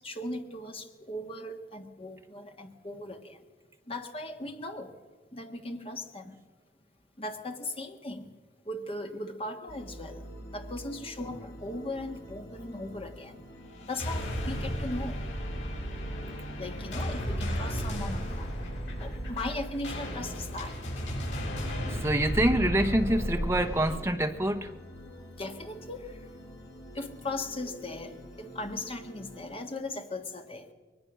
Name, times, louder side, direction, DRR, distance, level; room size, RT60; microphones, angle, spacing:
voice 1, 0.0-3.4 3.9-4.9 5.3-6.3 7.2-8.3 8.7-10.2 10.5-13.4 13.8-15.2 16.6-20.7 25.4-26.2 26.9-30.7, left 2 dB, 30° left, 5 dB, 1.6 m, -38 dB
sound 1, 9.7-29.5, equal, 65° left, 4.9 m, -48 dB
sound 2, 13.8-24.0, equal, 85° left, 7.8 m, -34 dB
voice 2, 21.9-24.7, right 1 dB, 15° right, 7 dB, 1.0 m, -26 dB
22.0 x 19.5 x 6.1 m, 1.4 s
head